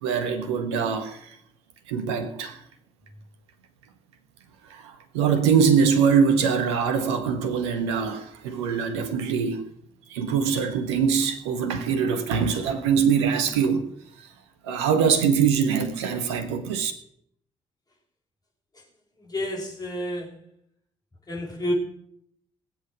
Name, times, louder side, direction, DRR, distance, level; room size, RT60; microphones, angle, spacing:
voice 1, 0.0-1.4 1.9-2.6 4.6-9.7 10.1-13.9 14.2-14.3 14.6-16.9, right 6 dB, 75° right, 1.2 m, -23 dB
voice 2, 19.2-20.3 21.3-21.7, left 1 dB, 25° left, 5.4 m, -30 dB
20.0 x 8.2 x 6.3 m
figure-of-eight pair, 40°, 14 cm